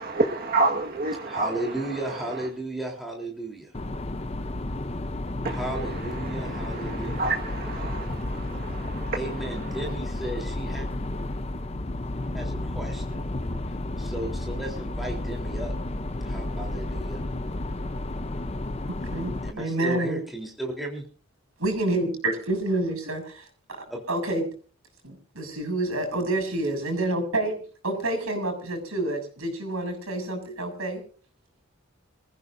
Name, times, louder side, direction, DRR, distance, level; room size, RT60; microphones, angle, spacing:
voice 1, 0.0-1.7 2.0-2.2 5.4-9.2, right 3 dB, 45° right, 1 dB, 1.7 m, -29 dB
voice 2, 1.2-3.7 5.5-7.3 9.1-10.9 12.3-13.3 14.0-15.7 16.2-17.2 19.4-21.0 23.9-24.0, right 1 dB, ahead, -1 dB, 3.7 m, -34 dB
sound 1, 3.7-19.5, left 1 dB, 30° left, 0.7 m, -32 dB
voice 3, 18.9-20.2 21.6-24.5 25.0-31.0, right 2 dB, 80° right, 7 dB, 7.2 m, -28 dB
26.5 x 15.0 x 2.7 m, 0.39 s
head